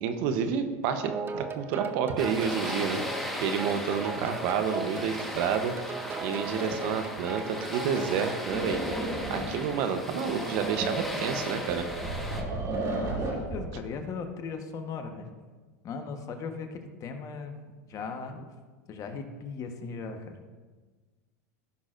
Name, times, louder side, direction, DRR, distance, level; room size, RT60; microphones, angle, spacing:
voice 1, 0.0-3.0 3.4-5.7 6.2-8.8 9.3-11.9, right 7 dB, 60° right, 8 dB, 0.9 m, -29 dB
sound 1, 1.0-8.4, right 4 dB, 25° right, 0.8 m, -37 dB
sound 2, 2.2-12.4, left 1 dB, 5° left, 1.4 m, -37 dB
sound 3, 8.5-13.6, right 2 dB, 40° right, 2.7 m, -34 dB
voice 2, 12.9-15.3 15.8-17.6 17.9-18.4 18.9-20.4, left 5 dB, 40° left, 6 dB, 1.2 m, -38 dB
15.5 x 6.2 x 2.6 m, 1.4 s
hypercardioid pair, 105°, 9 cm